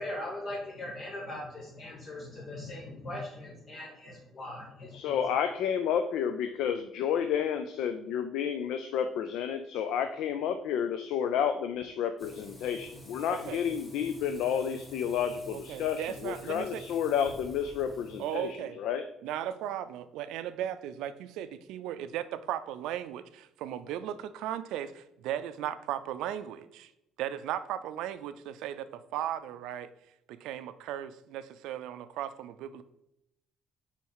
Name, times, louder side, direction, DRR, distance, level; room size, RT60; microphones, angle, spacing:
voice 1, 0.0-5.2, left 1 dB, 45° left, -4 dB, 1.5 m, -40 dB
voice 2, 4.9-19.0, left 8 dB, 80° left, 8 dB, 0.4 m, -31 dB
Frying (food), 12.2-18.5, equal, 30° left, 2.5 m, -49 dB
voice 3, 13.3-13.6 15.5-16.8 18.2-18.8 19.2-26.9 27.2-29.9 30.3-32.8, right 11 dB, 85° right, 12 dB, 0.4 m, -36 dB
4.4 x 4.4 x 5.5 m, 0.84 s
supercardioid pair, 80°, 0 cm